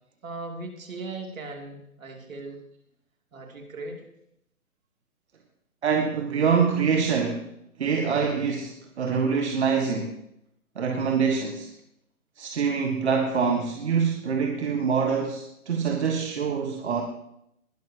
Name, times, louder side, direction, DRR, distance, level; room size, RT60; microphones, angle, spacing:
voice 1, 0.2-2.6 3.3-4.0, right 3 dB, 60° right, 2 dB, 3.2 m, -38 dB
voice 2, 5.8-7.4 7.8-10.1 10.7-11.7 12.4-17.0, right 6 dB, 45° right, 2 dB, 1.6 m, -25 dB
20.5 x 12.0 x 3.0 m, 0.76 s
figure-of-eight pair, 145°, 45 cm